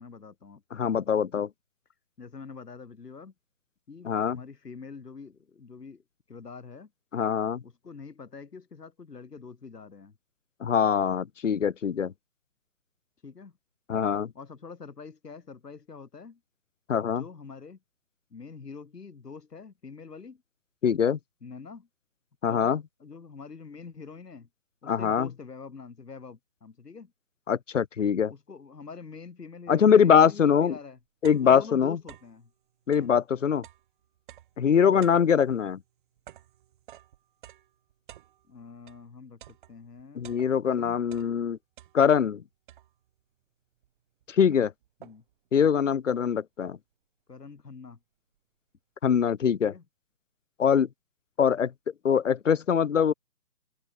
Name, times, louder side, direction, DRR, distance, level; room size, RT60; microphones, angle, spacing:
voice 1, 0.0-0.9 2.2-3.3 3.9-6.9 7.6-10.2 13.2-13.5 14.3-16.4 17.0-17.8 18.3-20.4 21.4-21.9 22.4-24.5 24.8-27.1 28.3-31.0 31.4-32.5 32.9-33.1 38.5-39.4 39.7-40.3 40.6-41.0 45.0-45.2 47.3-48.0 49.6-49.8, left 5 dB, 70° left, 4.2 m, -45 dB
voice 2, 0.7-1.5 4.1-4.4 7.1-7.6 10.6-12.1 13.9-14.3 16.9-17.2 20.8-21.2 22.4-22.8 24.9-25.3 27.5-28.3 29.7-30.7 31.2-32.0 32.9-33.6 34.6-35.8 40.2-41.6 41.9-42.4 44.4-44.7 45.5-46.8 49.0-49.7 50.6-50.9 51.4-51.7 52.0-53.1, left 7 dB, 50° left, 0.7 m, -23 dB
sound 1, 30.3-30.4 30.8-32.4 32.8-39.1 39.4-40.8 41.0-42.3 42.7-43.2 43.8-43.9 44.2-45.5, right 12 dB, 30° right, 7.8 m, -52 dB
open air
figure-of-eight pair, 155°, 50 cm